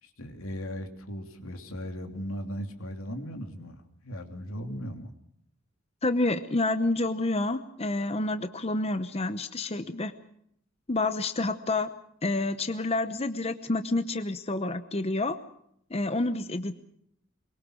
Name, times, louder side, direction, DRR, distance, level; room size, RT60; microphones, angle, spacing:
voice 1, 0.0-5.1, equal, 85° left, 5 dB, 2.9 m, -37 dB
voice 2, 6.0-10.1 10.9-11.9 12.2-15.4 15.9-16.7, left 2 dB, 30° left, 10 dB, 0.8 m, -28 dB
23.0 x 22.5 x 6.3 m, 0.71 s
head